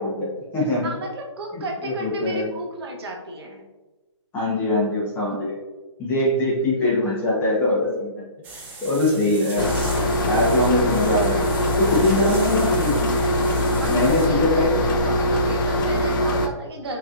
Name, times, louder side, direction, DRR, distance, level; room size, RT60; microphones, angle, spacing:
voice 1, 0.0-0.9 1.5-2.4 4.3-5.6 6.0-8.2 8.8-9.7 10.2-11.4 11.8-13.3 13.9-14.7, left 2 dB, 15° left, -5 dB, 0.9 m, -22 dB
voice 2, 0.8-3.6 5.3-5.4 13.8-13.9 14.3-17.0, right 1 dB, 55° right, 2 dB, 0.8 m, -33 dB
sound 1, 8.4-14.3, right 3 dB, 10° right, 0.5 m, -38 dB
sound 2, 9.6-16.5, left 1 dB, 40° left, 0.5 m, -22 dB
5.2 x 2.9 x 2.4 m, 1.2 s
hypercardioid pair, 150°, 16 cm